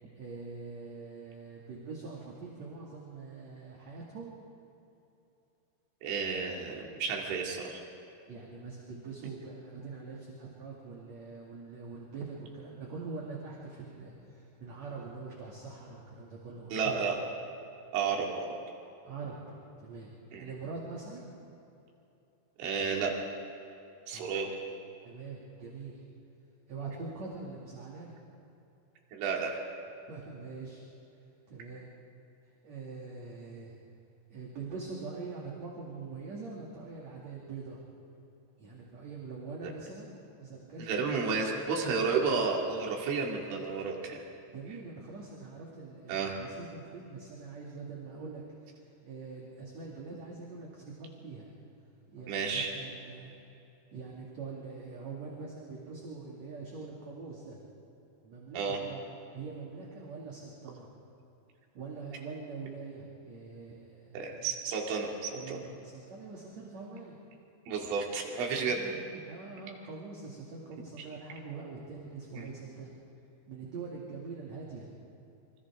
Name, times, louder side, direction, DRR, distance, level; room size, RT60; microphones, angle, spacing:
voice 1, 0.1-4.3 8.3-17.1 19.0-19.4 19.8-20.1 20.4-21.3 24.1-24.3 25.0-26.0 26.7-28.2 30.1-30.8 31.5-31.9 32.6-33.8 34.3-37.8 38.6-41.2 44.5-51.5 52.1-53.3 53.9-57.7 58.2-59.0 59.3-61.0 61.7-64.5 65.3-67.2 68.6-72.9 73.5-74.9, right 4 dB, 45° right, -4 dB, 3.1 m, -44 dB
voice 2, 6.0-7.8 16.7-17.2 17.9-18.6 20.3-20.5 22.6-23.1 24.1-24.6 29.1-29.6 39.6-39.7 40.8-44.2 46.1-46.3 52.3-52.7 58.5-58.8 64.1-65.6 67.7-68.8 71.0-71.1 72.3-72.5, right 5 dB, 85° right, 0 dB, 4.9 m, -32 dB
28.5 x 25.5 x 3.7 m, 2.8 s
omnidirectional pair, 5.3 m